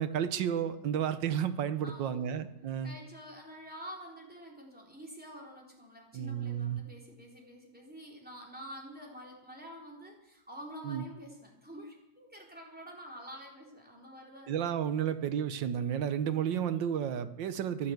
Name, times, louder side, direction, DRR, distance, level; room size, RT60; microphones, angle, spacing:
voice 1, 0.0-3.0 6.1-6.8 10.8-11.0 14.5-17.9, right 9 dB, 80° right, 12 dB, 1.5 m, -32 dB
voice 2, 1.8-2.4 2.8-14.6, equal, 5° right, -1 dB, 3.6 m, -48 dB
14.5 x 11.5 x 7.9 m, 0.92 s
omnidirectional pair, 2.0 m